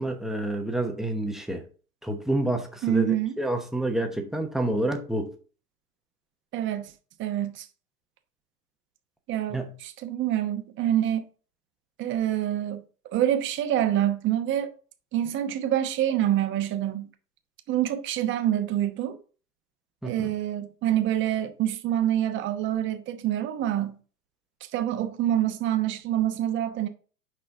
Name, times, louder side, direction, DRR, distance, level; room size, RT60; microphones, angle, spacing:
voice 1, 0.0-1.6 2.0-5.3 9.5-9.7 20.0-20.3, right 1 dB, ahead, 0.9 m, -28 dB
voice 2, 2.8-3.4 6.5-6.9 7.2-7.7 9.3-11.2 12.0-12.8 13.1-14.7 15.1-17.1 17.7-19.2 20.0-24.0 24.7-26.9, right 11 dB, 25° right, 1.0 m, -26 dB
8.2 x 5.5 x 3.6 m
hypercardioid pair, 105°, 47 cm